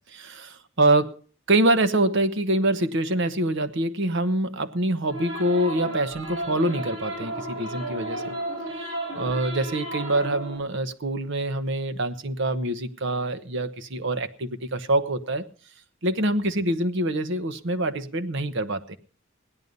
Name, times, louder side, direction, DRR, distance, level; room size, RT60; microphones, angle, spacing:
voice 1, 0.1-1.1 1.5-8.3 9.1-15.4 16.0-19.0, right 1 dB, 65° right, 1.1 m, -25 dB
sound 1, 5.1-10.6, right 1 dB, 80° right, 7.5 m, -33 dB
17.0 x 11.0 x 5.4 m
head